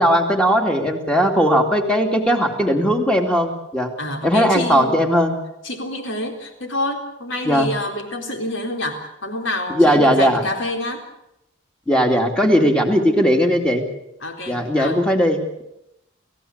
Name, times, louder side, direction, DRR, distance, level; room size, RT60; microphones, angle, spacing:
voice 1, 0.0-3.9 4.2-5.3 7.4-7.7 9.7-10.4 11.9-13.8 14.5-15.6, equal, 5° left, 4 dB, 2.5 m, -18 dB
voice 2, 4.0-4.9 5.6-11.0 14.2-15.0, left 1 dB, 65° left, 4 dB, 4.1 m, -27 dB
29.5 x 15.5 x 8.0 m, 0.86 s
head